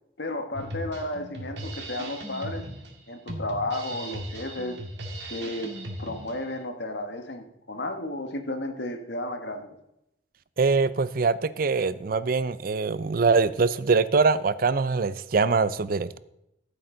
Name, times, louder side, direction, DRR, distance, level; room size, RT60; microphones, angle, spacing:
voice 1, 0.2-2.6 3.1-4.8 5.3-5.7 6.0-9.8, left 1 dB, 85° left, 6 dB, 1.5 m, -33 dB
Drum kit, 0.5-6.5, right 1 dB, 80° right, 2.1 m, -38 dB
voice 2, 10.6-16.2, right 4 dB, 55° right, 16 dB, 0.5 m, -23 dB
14.0 x 7.9 x 3.9 m, 0.82 s
head